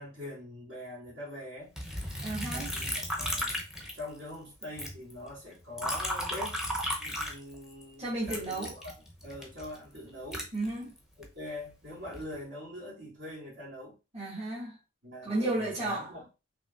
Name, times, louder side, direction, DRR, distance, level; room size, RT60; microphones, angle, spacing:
voice 1, 0.0-1.7 2.5-6.6 7.0-9.0 9.2-10.5 11.2-14.0 15.0-16.3, left 1 dB, 70° right, 2.5 m, -43 dB
Liquid, 1.8-4.3 4.6-7.8 8.3-11.3 11.8-12.4, equal, 5° right, 0.7 m, -35 dB
voice 2, 2.2-2.7 8.0-8.7 10.5-10.9 14.1-14.8 15.2-16.1, right 2 dB, 30° right, 1.9 m, -33 dB
5.0 x 3.0 x 2.4 m
head